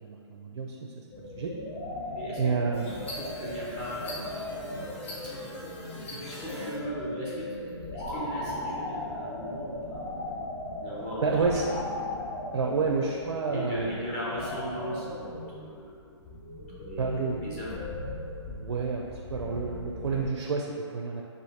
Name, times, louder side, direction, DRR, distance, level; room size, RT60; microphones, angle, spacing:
voice 1, 0.0-1.0 1.4-1.5 2.4-3.0 3.4-3.5 11.2-11.8 12.5-14.0 17.0-17.5 18.5-21.2, right 4 dB, 80° right, 0 dB, 0.5 m, -29 dB
sound 1, 1.1-20.3, left 1 dB, 30° left, 1.0 m, -38 dB
sound 2, 2.7-6.8, left 1 dB, 65° left, 1.5 m, -42 dB
voice 2, 3.2-4.5 6.1-10.0 10.8-11.8 13.5-16.1 16.6-17.7, equal, 10° left, -7 dB, 0.4 m, -38 dB
5.0 x 2.6 x 4.1 m, 2.5 s
hypercardioid pair, 170°, 15 cm